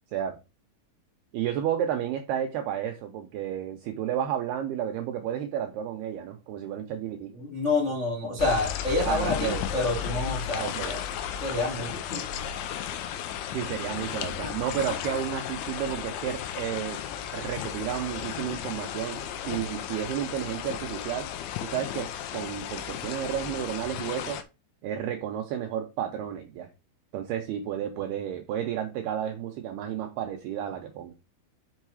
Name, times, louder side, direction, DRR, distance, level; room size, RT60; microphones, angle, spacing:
voice 1, 1.3-7.3 9.0-9.7 10.6-10.9 13.5-17.0 17.3-21.3 21.6-24.4 24.8-26.7 27.1-31.1, right 10 dB, 85° right, 2.3 m, -32 dB
voice 2, 7.4-11.0 11.4-12.2, left 2 dB, 40° left, 1.0 m, -28 dB
sound 1, 8.4-24.4, left 9 dB, 85° left, 3.1 m, -34 dB
6.6 x 5.5 x 4.7 m
omnidirectional pair, 5.5 m